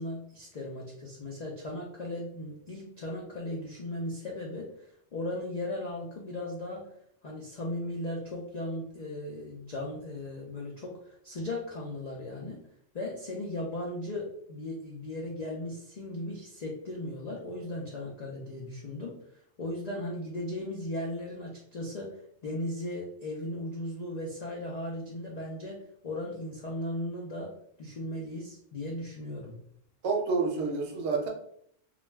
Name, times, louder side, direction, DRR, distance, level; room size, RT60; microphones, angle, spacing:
voice 1, 0.0-6.9 7.2-12.6 12.9-19.2 19.6-27.5 27.8-29.6, left 1 dB, 65° left, -3 dB, 0.4 m, -37 dB
voice 2, 30.0-31.3, right 4 dB, 65° right, 1 dB, 0.8 m, -28 dB
2.4 x 2.1 x 3.1 m, 0.68 s
omnidirectional pair, 1.3 m